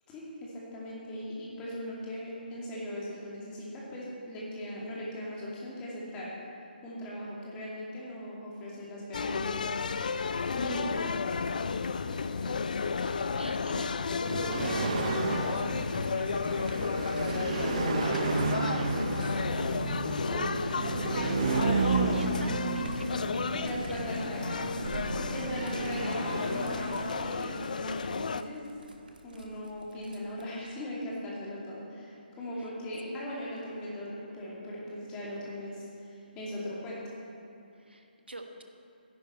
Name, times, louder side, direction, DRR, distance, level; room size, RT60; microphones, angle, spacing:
voice 1, 0.1-6.3 6.8-9.7 10.5-11.0 17.3-17.8 20.3-20.5 23.5-24.6 24.9-28.7 29.2-37.0, left 1 dB, 15° left, -6 dB, 2.4 m, -39 dB
sound 1, 9.1-28.4, left 5 dB, 50° left, 0.4 m, -32 dB
voice 2, 12.1-14.1 14.5-16.7 17.0-19.4 21.1-23.1 23.4-24.0 24.9-25.7 32.6-32.7 33.0-33.4 37.7-38.6, right 1 dB, 80° right, 5 dB, 1.2 m, -45 dB
sound 2, 14.3-27.7, right 4 dB, 35° right, 0.7 m, -33 dB
sound 3, 15.1-17.3 18.2-22.0 22.4-30.5, right 2 dB, 60° right, 1.4 m, -50 dB
13.0 x 10.5 x 4.3 m, 2.6 s
figure-of-eight pair, 145°, 5 cm